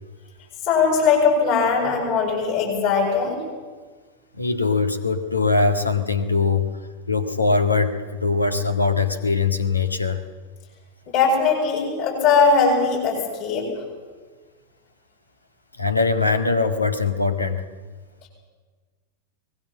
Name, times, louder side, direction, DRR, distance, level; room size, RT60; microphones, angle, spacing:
voice 1, 0.6-3.4 11.1-13.7, left 5 dB, 45° left, -1 dB, 7.7 m, -20 dB
voice 2, 4.3-6.7 7.1-10.2 15.8-17.6, left 4 dB, 80° left, 9 dB, 1.7 m, -21 dB
24.0 x 19.5 x 7.6 m, 1.4 s
figure-of-eight pair, 90°, 0 cm